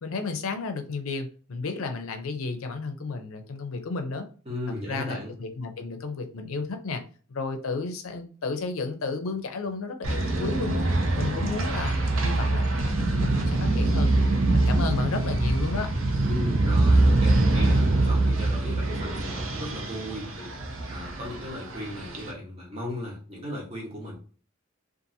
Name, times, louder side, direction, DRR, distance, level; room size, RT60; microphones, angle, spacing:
voice 1, 0.0-4.3 4.9-7.0 7.3-10.8 11.1-14.2 14.5-15.9, left 4 dB, 85° left, 7 dB, 0.5 m, -32 dB
voice 2, 4.5-5.3 16.2-20.5 20.9-24.2, left 1 dB, 30° right, -3 dB, 1.0 m, -36 dB
sound 1, 10.0-22.3, right 2 dB, 75° right, 0.6 m, -24 dB
2.6 x 2.4 x 2.7 m, 0.40 s
head